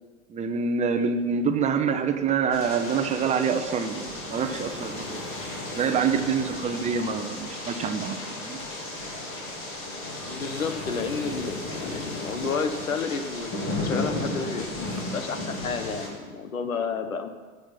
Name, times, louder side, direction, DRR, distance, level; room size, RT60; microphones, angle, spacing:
voice 1, 0.3-5.2 5.7-8.6, right 6 dB, 15° right, 6 dB, 0.9 m, -26 dB
sound 1, 2.5-16.1, left 2 dB, 30° left, 3.1 m, -34 dB
voice 2, 10.3-14.7 15.1-17.3, left 5 dB, 75° left, 9 dB, 1.4 m, -31 dB
19.0 x 6.7 x 5.9 m, 1.4 s
figure-of-eight pair, 100°, 41 cm